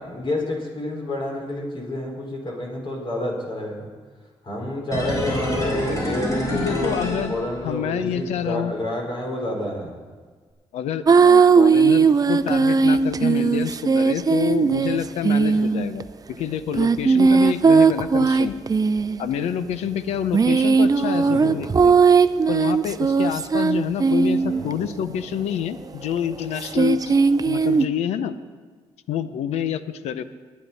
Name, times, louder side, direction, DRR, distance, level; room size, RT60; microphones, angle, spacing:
voice 1, 0.0-3.9 4.4-6.9 7.3-9.9 21.1-21.7 24.4-24.7, left 1 dB, 50° left, 0 dB, 4.9 m, -29 dB
sound 1, 4.9-8.0 8.3-8.4, left 1 dB, 30° left, 4.1 m, -27 dB
voice 2, 6.5-7.3 7.6-8.7 10.7-18.6 19.2-22.0 22.5-27.2 27.4-28.3 29.1-30.2, left 9 dB, 90° left, 13 dB, 0.7 m, -27 dB
sound 2, 11.1-16.0 16.7-19.2 20.1-24.7 26.6-27.9, right 5 dB, 35° right, 0.6 m, -18 dB
22.5 x 9.5 x 4.1 m, 1.5 s
cardioid pair, 65°, 11 cm